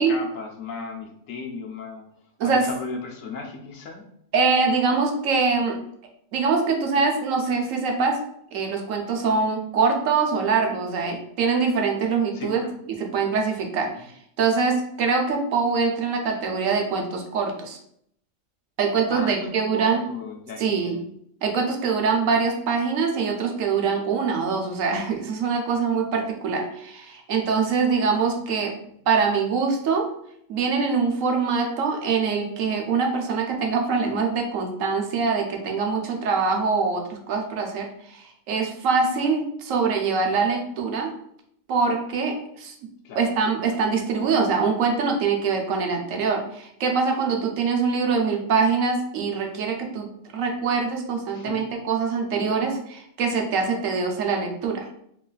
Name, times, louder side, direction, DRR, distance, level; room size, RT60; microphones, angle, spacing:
voice 1, 0.0-2.0 2.4-4.0 12.3-12.7 13.8-14.1 19.1-21.0 43.0-43.3 51.3-51.7, left 4 dB, 80° left, 2 dB, 1.0 m, -36 dB
voice 2, 4.3-5.8 6.3-8.2 8.5-12.6 12.9-13.9 14.4-17.8 18.8-20.0 20.6-21.0 21.4-28.7 29.1-30.1 30.5-41.1 41.7-42.7 43.1-50.1 50.3-54.9, right 5 dB, 85° right, 2 dB, 1.1 m, -24 dB
3.1 x 2.3 x 3.8 m, 0.70 s
omnidirectional pair, 1.4 m